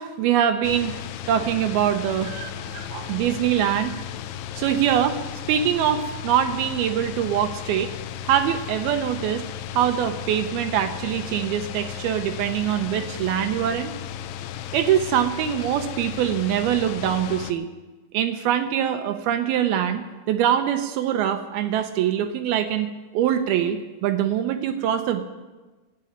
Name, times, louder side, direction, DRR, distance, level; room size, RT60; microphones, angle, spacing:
voice 1, 0.0-4.0 4.6-5.2 5.5-7.9 8.3-9.5 9.7-13.9 14.7-17.7 18.1-25.2, right 10 dB, 75° right, 7 dB, 2.5 m, -23 dB
sound 1, 0.6-17.5, left 10 dB, 80° left, 2.6 m, -35 dB
11.5 x 9.0 x 9.8 m, 1.2 s
omnidirectional pair, 4.8 m